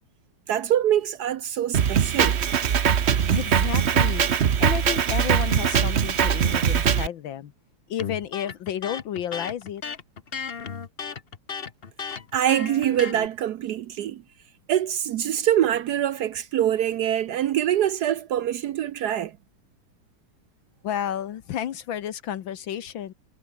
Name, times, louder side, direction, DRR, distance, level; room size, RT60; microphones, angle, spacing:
voice 1, 0.5-2.4 12.3-14.2 14.7-19.3, right 11 dB, 70° right, 1.0 m, -24 dB
Drum kit, 1.7-7.1, right 8 dB, 55° right, 0.7 m, -21 dB
voice 2, 3.3-7.5 7.9-9.8 20.8-23.1, left 10 dB, 70° left, 1.7 m, -31 dB
Electric guitar, 8.0-13.3, left 6 dB, 35° left, 1.0 m, -35 dB
omnidirectional pair, 2.3 m